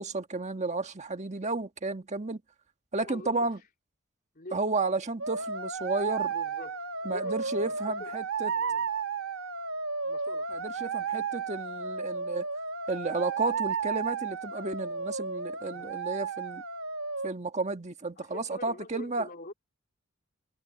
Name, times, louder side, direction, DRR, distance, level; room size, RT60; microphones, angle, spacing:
voice 1, 0.0-2.4 2.9-3.6 4.5-6.3 7.0-8.5 10.5-12.5 12.9-16.6 17.2-19.3, right 3 dB, 35° right, 1.5 m, -32 dB
voice 2, 3.0-3.5 4.3-4.6 6.3-7.7 8.0-8.1 8.5-8.8 10.0-10.5 15.6-15.9 18.2-19.5, left 2 dB, 45° left, 3.8 m, -45 dB
sound 1, 5.2-17.3, right 5 dB, 75° right, 2.1 m, -33 dB
head